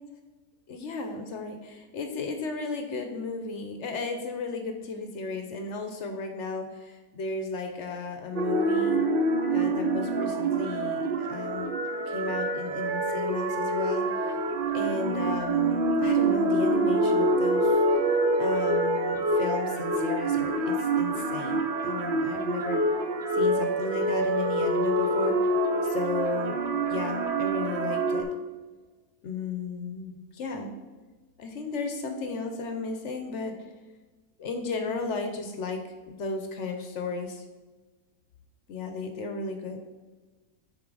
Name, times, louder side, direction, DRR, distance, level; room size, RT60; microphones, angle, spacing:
voice 1, 0.7-9.0 9.5-11.7 12.1-14.3 14.7-17.8 18.4-22.8 23.3-25.5 25.8-26.6 26.9-28.3 29.2-30.7 31.4-33.5 34.4-37.4 38.7-39.8, left 4 dB, 60° left, 5 dB, 0.8 m, -34 dB
sound 1, 8.4-28.2, right 2 dB, 65° right, 0.5 m, -26 dB
7.9 x 3.1 x 4.7 m, 1.3 s
omnidirectional pair, 1.6 m